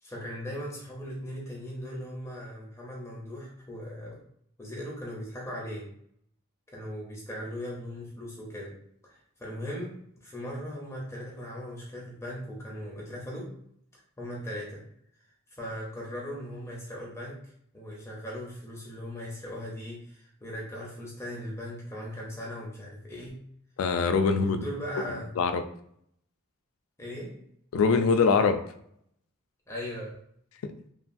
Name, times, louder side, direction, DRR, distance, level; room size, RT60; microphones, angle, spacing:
voice 1, 0.0-4.2 4.6-5.8 6.7-8.7 9.0-9.9 10.2-13.5 14.2-14.8 15.2-15.3 15.6-17.4 17.7-23.4 24.2-25.3 27.0-27.3 29.7-30.2, equal, 15° left, -4 dB, 0.6 m, -38 dB
voice 2, 23.8-24.6 25.4-25.6 27.7-28.6 30.6-30.7, left 5 dB, 65° left, 8 dB, 0.3 m, -23 dB
3.0 x 2.3 x 2.5 m, 0.67 s
head